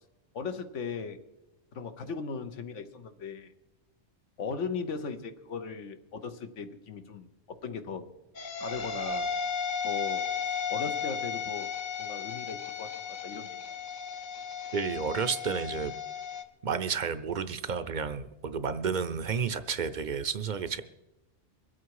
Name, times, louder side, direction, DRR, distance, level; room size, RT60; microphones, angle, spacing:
voice 1, 0.3-1.2 1.7-3.5 4.4-8.1 8.6-9.3 9.8-10.3 10.7-11.7 12.0-13.8, left 5 dB, 80° left, 8 dB, 1.3 m, -38 dB
sound 1, 8.3-16.4, left 6 dB, 45° left, 0.8 m, -34 dB
voice 2, 14.7-15.9 16.6-20.8, right 6 dB, 50° right, 12 dB, 0.6 m, -31 dB
23.0 x 8.5 x 4.7 m, 1.0 s
omnidirectional pair, 1.2 m